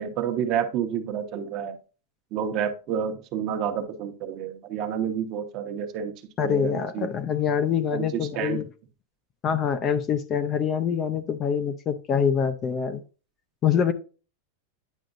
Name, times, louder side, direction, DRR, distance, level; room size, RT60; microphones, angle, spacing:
voice 1, 0.0-1.8 2.3-6.1 6.4-7.1 7.9-8.1 8.4-8.6, right 8 dB, 35° right, 7 dB, 1.0 m, -29 dB
voice 2, 6.4-8.7 9.4-13.0 13.6-13.9, left 7 dB, 25° left, 10 dB, 0.5 m, -25 dB
9.2 x 5.1 x 2.5 m, 0.35 s
supercardioid pair, 160°, 0 cm